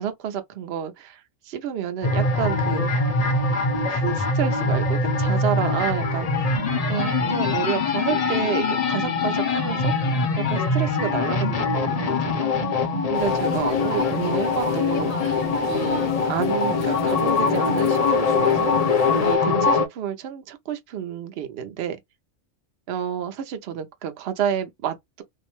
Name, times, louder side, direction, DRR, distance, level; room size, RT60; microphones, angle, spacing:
voice 1, 0.0-3.1 3.9-12.8 13.1-22.0 22.9-25.2, right 9 dB, 60° right, 0.8 m, -30 dB
sound 1, 2.0-19.9, left 3 dB, 40° left, 0.6 m, -23 dB
sound 2, 13.1-19.4, left 9 dB, 85° left, 1.0 m, -34 dB
2.6 x 2.1 x 2.9 m
omnidirectional pair, 1.3 m